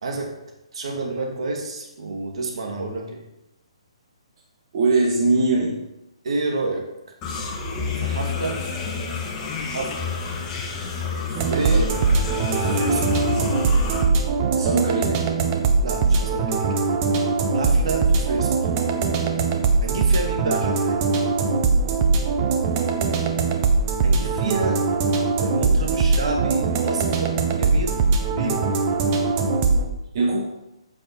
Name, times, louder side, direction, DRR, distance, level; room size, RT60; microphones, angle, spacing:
voice 1, 0.0-0.3 0.7-3.2 6.2-6.9 8.0-8.6 9.0-9.3 9.7-10.0 11.3-11.9 12.6-13.2 15.8-16.7 17.5-18.7 19.8-21.1 24.0-24.8 25.4-28.0 28.4-28.7, right 3 dB, 65° right, 1 dB, 2.3 m, -29 dB
voice 2, 4.7-5.7 11.7-12.0 14.5-15.2 30.1-30.5, right 3 dB, 50° right, -2 dB, 1.9 m, -21 dB
sound 1, 7.2-14.0, left 5 dB, 25° left, 1.7 m, -29 dB
sound 2, 11.3-29.9, right 4 dB, 30° right, 1.2 m, -21 dB
8.6 x 7.2 x 4.7 m, 0.92 s
hypercardioid pair, 145°, 3 cm